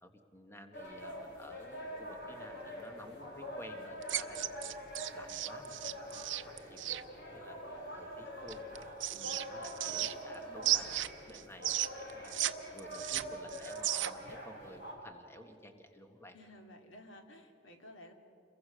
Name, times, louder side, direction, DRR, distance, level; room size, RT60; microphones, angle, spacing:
voice 1, 0.0-4.7 5.1-7.6 7.9-8.6 9.1-12.3 12.7-16.4, left 1 dB, 15° left, 5 dB, 1.4 m, -53 dB
sound 1, 0.7-14.9, equal, 60° left, 5.3 m, -45 dB
sound 2, 4.0-7.0 8.5-10.3 10.6-12.5 12.8-14.3, right 14 dB, 70° right, 0.7 m, -35 dB
voice 2, 16.3-18.1, left 1 dB, 90° left, 4 dB, 2.5 m, -54 dB
29.0 x 22.5 x 6.3 m, 2.9 s
head